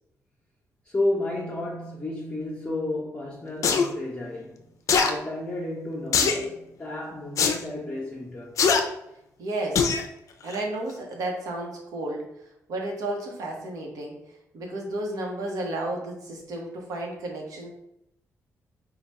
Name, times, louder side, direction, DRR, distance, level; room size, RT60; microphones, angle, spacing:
voice 1, 0.8-4.7 5.0-8.5, left 2 dB, 20° left, 0.8 m, -32 dB
sound 1, 3.6-3.9 4.9-5.1 6.1-6.4 7.4-7.6 8.6-8.8 9.7-10.0 10.5-10.6, left 5 dB, 65° left, 0.4 m, -21 dB
voice 2, 9.4-9.9 10.4-12.2 12.7-14.2 14.5-17.7, right 1 dB, 80° right, 0.9 m, -32 dB
3.4 x 2.3 x 4.1 m
cardioid pair, 100°, 6 cm